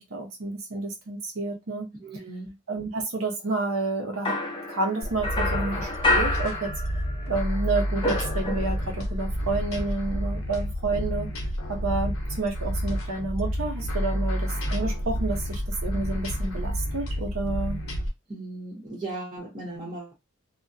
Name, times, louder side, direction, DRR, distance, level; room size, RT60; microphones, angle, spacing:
voice 1, 0.0-1.9 2.7-4.3 4.7-6.7 7.3-11.3 11.7-17.8, right 3 dB, 90° right, 0.8 m, -30 dB
voice 2, 2.0-2.5 18.3-20.1, right 2 dB, 25° right, 0.8 m, -37 dB
sound 1, 4.2-7.3 7.5-9.0, left 2 dB, 25° left, 0.6 m, -28 dB
sound 2, 5.0-18.1, equal, 70° left, 0.8 m, -29 dB
2.3 x 2.1 x 2.6 m
head